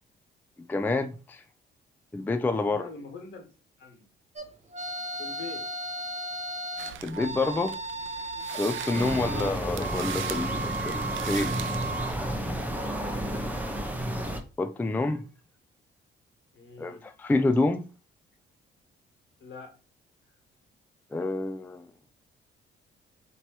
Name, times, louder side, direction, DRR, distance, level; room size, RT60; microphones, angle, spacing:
voice 1, 0.7-1.4 2.1-2.9 7.0-7.7 8.5-11.5 14.6-15.2 16.8-17.8 21.1-21.8, left 2 dB, 10° left, 0.4 m, -28 dB
voice 2, 2.7-3.5 3.8-4.1 5.2-5.7 9.0-9.8 12.7-13.8 16.5-17.1 19.4-19.7, left 4 dB, 75° left, 1.5 m, -44 dB
sound 1, 4.4-12.1, right 2 dB, 35° right, 0.9 m, -35 dB
sound 2, 6.8-12.1, right 12 dB, 80° right, 0.4 m, -41 dB
sound 3, 8.9-14.4, right 1 dB, 10° right, 0.7 m, -32 dB
3.0 x 2.9 x 4.6 m
cardioid pair, 90°, 20 cm